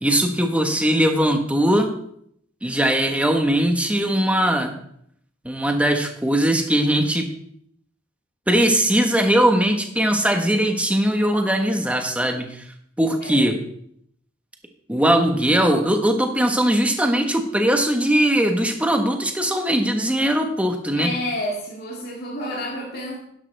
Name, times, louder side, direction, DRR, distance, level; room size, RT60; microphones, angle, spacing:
voice 1, 0.0-1.9 2.6-4.7 5.4-7.3 8.5-12.6 13.0-13.6 14.9-21.1, right 1 dB, 5° right, 4 dB, 1.2 m, -20 dB
voice 2, 20.9-23.2, left 1 dB, 55° left, -4 dB, 2.4 m, -29 dB
12.0 x 10.5 x 3.4 m, 0.69 s
head